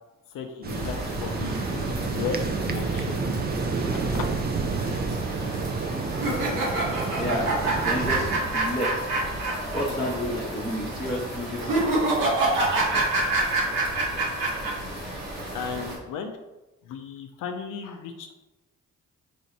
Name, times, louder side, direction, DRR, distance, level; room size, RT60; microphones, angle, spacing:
voice 1, 0.3-1.6 2.0-3.2 4.0-4.2 15.5-16.3 16.8-18.3, left 6 dB, 75° left, 5 dB, 0.5 m, -35 dB
sound 1, 0.6-8.4, right 4 dB, 30° right, 0.5 m, -30 dB
sound 2, 0.7-16.0, right 1 dB, 90° right, 1.1 m, -35 dB
sound 3, 6.1-9.8 10.1-10.2 11.6-14.7, right 2 dB, 70° right, 1.2 m, -25 dB
voice 2, 7.1-8.9 9.7-11.9, left 1 dB, 15° left, -6 dB, 0.9 m, -31 dB
3.5 x 2.6 x 4.1 m, 1.0 s
supercardioid pair, 50°, 33 cm